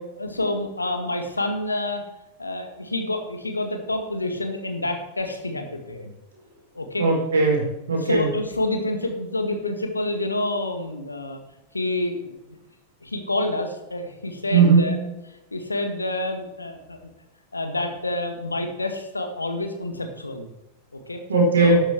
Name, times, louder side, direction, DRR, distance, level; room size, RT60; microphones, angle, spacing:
voice 1, 0.2-2.0 2.4-6.1 6.7-7.1 8.0-11.4 11.7-12.6 13.0-15.0 15.5-17.1 17.5-20.5 20.9-21.2 21.6-21.8, left 2 dB, 80° left, 5 dB, 1.8 m, -28 dB
voice 2, 7.0-8.3 14.5-15.0 21.3-21.8, right 4 dB, 70° right, -1 dB, 4.5 m, -18 dB
12.0 x 8.7 x 4.6 m, 0.95 s
figure-of-eight pair, 90°, 0 cm